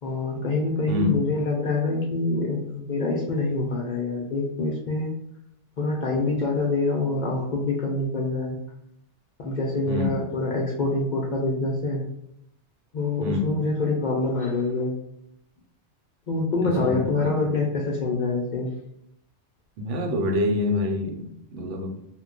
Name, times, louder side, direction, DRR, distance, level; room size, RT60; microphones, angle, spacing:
voice 1, 0.0-5.1 5.8-8.6 9.4-12.0 12.9-14.9 16.3-18.7, left 3 dB, 55° left, 0.6 m, -25 dB
voice 2, 0.9-1.2 9.9-10.2 13.2-13.5 16.6-17.4 19.8-21.9, left 2 dB, 90° right, 1.0 m, -27 dB
2.2 x 2.2 x 3.7 m
omnidirectional pair, 1.2 m